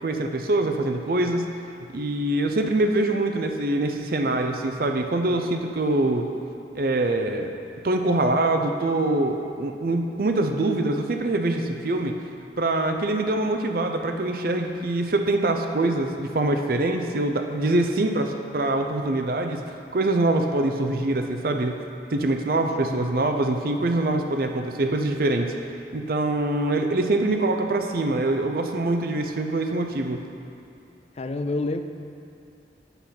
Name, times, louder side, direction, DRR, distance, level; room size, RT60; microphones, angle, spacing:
voice 1, 0.0-1.4 1.9-6.3 6.7-7.5 7.8-12.1 12.6-21.8 22.1-25.5 25.9-30.2, right 2 dB, 55° right, 5 dB, 0.5 m, -24 dB
voice 2, 31.2-31.8, left 2 dB, 35° left, 8 dB, 0.4 m, -28 dB
8.2 x 6.8 x 5.8 m, 2.6 s
head